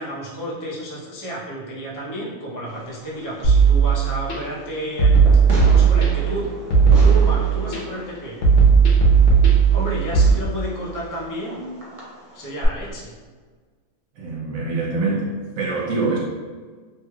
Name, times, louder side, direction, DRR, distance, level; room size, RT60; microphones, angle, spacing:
voice 1, 0.0-6.5 6.9-8.4 9.7-11.7 12.3-13.1, right 1 dB, 25° left, -6 dB, 0.4 m, -31 dB
Fireworks, 2.7-12.7, equal, 35° right, 0.5 m, -37 dB
sound 1, 3.4-4.4 5.0-6.3 6.7-7.8 8.4-10.3, right 6 dB, 60° left, 1.0 m, -15 dB
voice 2, 14.2-15.3 15.6-16.2, right 3 dB, 75° right, -3 dB, 1.0 m, -24 dB
3.2 x 3.0 x 2.3 m, 1.5 s
omnidirectional pair, 1.5 m